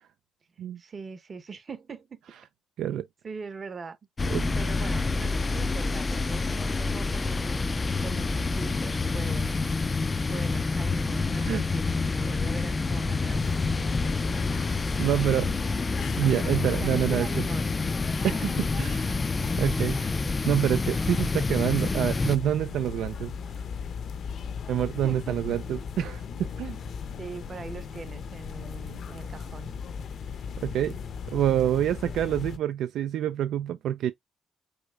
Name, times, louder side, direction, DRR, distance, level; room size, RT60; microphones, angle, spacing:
voice 1, 0.5-2.4 3.2-4.0 4.5-13.9 16.8-17.7 25.0-25.6 27.2-29.7, right 4 dB, 40° right, 0.9 m, -42 dB
sound 1, 4.2-22.4, left 3 dB, 30° left, 0.3 m, -28 dB
sound 2, 13.3-32.6, left 6 dB, 60° left, 0.6 m, -37 dB
voice 2, 15.0-15.5 16.2-17.3 18.2-19.2 19.6-20.1 20.5-23.3 24.7-26.8 30.6-31.0 31.3-34.1, right 11 dB, 80° right, 0.3 m, -27 dB
4.8 x 4.1 x 2.3 m
cardioid pair, 90°, 0 cm